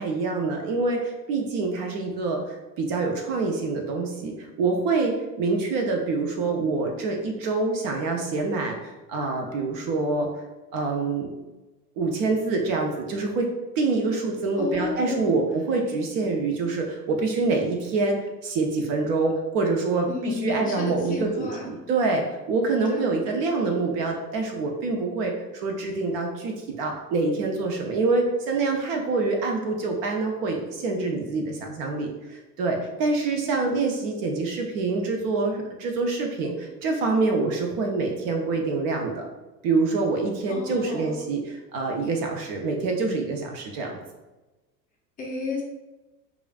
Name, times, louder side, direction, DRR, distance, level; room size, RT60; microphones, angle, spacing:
voice 1, 0.0-10.3 10.7-11.3 12.0-13.5 13.8-39.3 39.6-44.0, right 3 dB, 40° right, 2 dB, 0.5 m, -26 dB
voice 2, 14.6-15.3 20.1-21.8 22.9-23.1 40.5-41.2 45.2-45.6, left 3 dB, 15° left, -2 dB, 0.6 m, -32 dB
4.8 x 2.5 x 2.3 m, 1.1 s
figure-of-eight pair, 80°, 48 cm